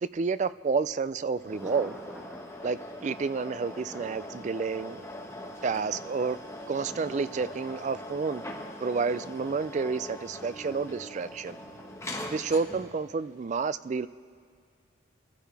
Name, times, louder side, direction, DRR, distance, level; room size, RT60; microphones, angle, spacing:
voice 1, 0.0-2.0 2.6-5.0 5.6-6.4 6.7-8.4 8.8-11.6 12.3-14.1, right 4 dB, 35° right, 15 dB, 0.3 m, -30 dB
Thunder, 0.8-6.8, equal, 5° right, 1.3 m, -50 dB
sound 1, 1.3-13.0, left 1 dB, 15° left, 1.3 m, -42 dB
28.5 x 15.0 x 3.4 m, 2.1 s
head